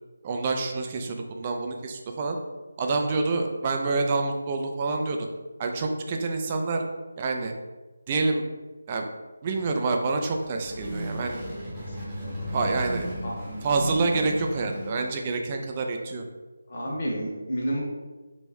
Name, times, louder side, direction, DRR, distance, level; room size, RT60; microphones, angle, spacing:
voice 1, 0.2-2.4 2.8-5.3 5.6-6.9 7.2-7.5 8.1-8.4 8.9-9.1 9.4-11.4 12.5-13.1 13.6-16.2, right 3 dB, 25° right, 3 dB, 0.4 m, -27 dB
sound 1, 10.2-15.5, equal, 10° right, 0.9 m, -35 dB
voice 2, 16.7-17.8, equal, 35° left, -4 dB, 0.8 m, -29 dB
3.4 x 3.0 x 3.3 m, 1.2 s
figure-of-eight pair, 155°, 0 cm